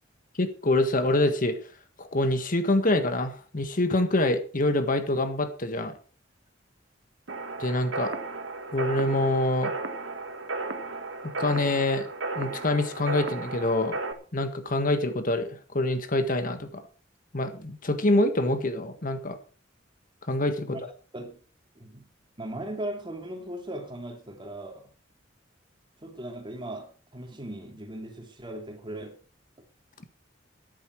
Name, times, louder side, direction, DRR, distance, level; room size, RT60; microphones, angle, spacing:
voice 1, 0.4-1.6 2.0-5.9 7.6-8.1 8.7-9.7 11.2-12.1 12.3-14.0 14.3-16.8 17.3-19.4 20.3-20.8, left 2 dB, 45° left, 1.6 m, -25 dB
sound 1, 7.3-14.1, right 3 dB, 80° right, 1.6 m, -34 dB
voice 2, 21.7-22.1 22.4-24.9 26.0-29.2, right 1 dB, 25° right, 2.8 m, -38 dB
14.0 x 10.5 x 4.6 m
head